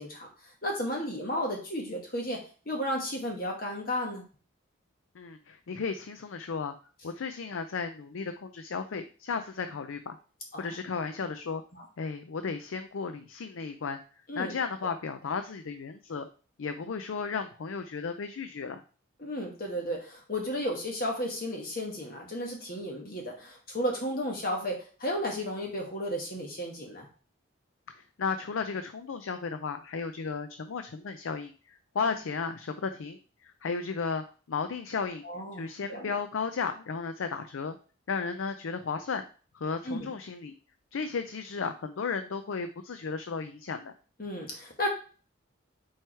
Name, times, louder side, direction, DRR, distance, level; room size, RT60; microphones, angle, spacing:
voice 1, 0.0-4.3 10.5-10.7 11.7-11.8 14.3-14.5 19.2-27.1 32.0-32.2 35.2-36.1 39.8-40.1 44.2-44.9, equal, 45° left, 0 dB, 1.2 m, -33 dB
voice 2, 5.1-6.7 7.0-10.2 10.6-11.6 12.0-14.0 14.4-16.3 16.6-18.8 27.9-35.2 35.5-37.8 38.1-39.2 39.5-40.5 40.9-43.9, left 5 dB, 85° left, 8 dB, 0.5 m, -34 dB
4.7 x 4.6 x 4.6 m, 0.38 s
head